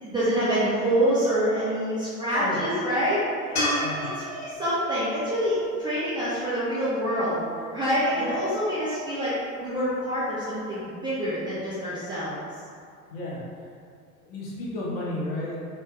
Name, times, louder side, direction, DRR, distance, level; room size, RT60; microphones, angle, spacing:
voice 1, 0.0-3.3 3.6-7.4 7.7-9.3 9.6-12.4, equal, 10° right, -11 dB, 0.4 m, -26 dB
sound 1, 3.6-6.8 10.1-10.2, left 1 dB, 75° left, 1.2 m, -32 dB
voice 2, 13.1-13.4 14.2-15.6, left 1 dB, 45° left, -6 dB, 1.0 m, -32 dB
3.1 x 2.8 x 2.3 m, 2.3 s
figure-of-eight pair, 75°, 44 cm